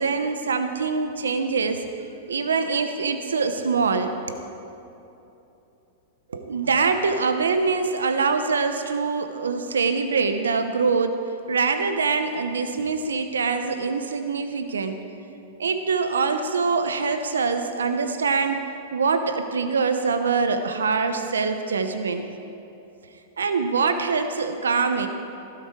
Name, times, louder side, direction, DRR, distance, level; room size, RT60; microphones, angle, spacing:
voice 1, 0.0-1.8 2.3-4.5 6.3-11.2 11.5-15.0 15.6-18.7 18.9-22.3 23.4-25.1, right 4 dB, 90° right, 8 dB, 0.8 m, -24 dB
15.0 x 12.5 x 4.6 m, 2.9 s
hypercardioid pair, 110°, 0 cm